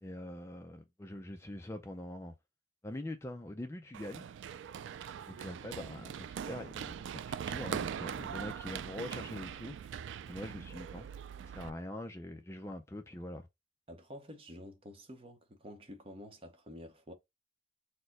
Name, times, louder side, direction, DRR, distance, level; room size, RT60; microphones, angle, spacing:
voice 1, 0.0-2.3 2.8-4.3 5.3-6.9 7.3-9.9 10.3-11.1 11.4-13.5, left 1 dB, 15° left, 0.4 m, -43 dB
Run, 3.9-11.7, right 8 dB, 80° right, 0.3 m, -41 dB
voice 2, 13.9-17.1, equal, 30° right, 0.8 m, -49 dB
4.4 x 2.2 x 4.5 m
head